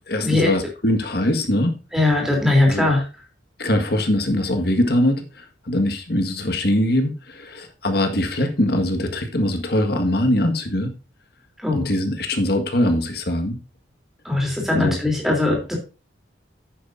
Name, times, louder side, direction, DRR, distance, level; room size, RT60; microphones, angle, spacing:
voice 1, 0.1-1.8 2.7-2.9 3.6-10.9 11.7-13.6 14.7-15.0, left 1 dB, 55° left, 5 dB, 1.7 m, -22 dB
voice 2, 1.9-3.0 11.6-11.8 14.2-15.7, left 2 dB, ahead, 0 dB, 3.3 m, -19 dB
11.0 x 9.2 x 2.7 m, 0.33 s
head